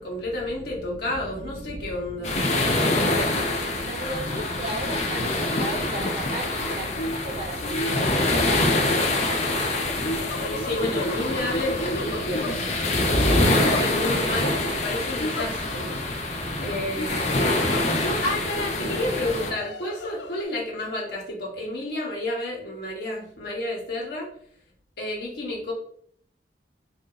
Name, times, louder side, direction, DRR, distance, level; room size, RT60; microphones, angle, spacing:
voice 1, 0.0-2.8 10.3-12.5 13.3-15.9 16.6-17.4 17.9-24.3 25.0-25.7, left 1 dB, 60° left, -2 dB, 1.1 m, -31 dB
sound 1, 2.2-19.5, left 2 dB, 40° left, 0.6 m, -25 dB
voice 2, 3.8-10.0, right 1 dB, 35° right, -1 dB, 0.5 m, -36 dB
sound 2, 5.5-5.8 6.2-14.4 15.2-15.9 16.2-16.3 17.0-18.4 19.0-20.4, left 1 dB, 80° left, 0.4 m, -34 dB
4.3 x 2.6 x 3.8 m, 0.62 s
head